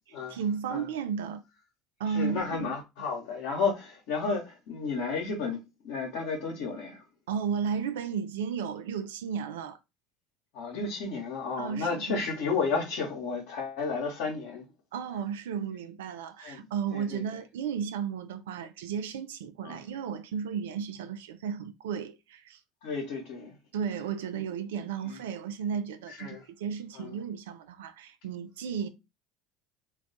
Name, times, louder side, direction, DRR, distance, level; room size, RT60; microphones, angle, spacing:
voice 1, 0.3-1.4 2.0-2.7 7.3-9.8 11.6-12.2 14.9-22.6 23.7-28.9, right 7 dB, 80° right, 0.3 m, -34 dB
voice 2, 2.1-7.0 10.5-14.6 16.4-17.2 19.6-19.8 22.8-23.6 25.1-25.2 26.1-26.4 26.9-27.1, left 4 dB, 70° left, 0.8 m, -32 dB
2.3 x 2.3 x 3.8 m
hypercardioid pair, 75°, 0 cm